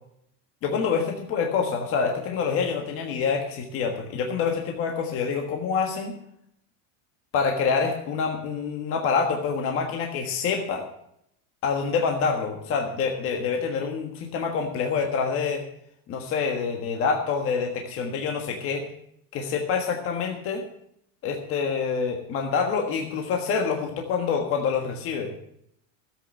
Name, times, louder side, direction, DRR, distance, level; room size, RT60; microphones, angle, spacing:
voice 1, 0.6-6.2 7.3-10.8 11.6-15.6 16.1-18.9 19.3-20.6 21.2-25.3, left 5 dB, 30° left, 2 dB, 1.5 m, -26 dB
13.5 x 8.2 x 6.5 m, 0.72 s
supercardioid pair, 170°, 42 cm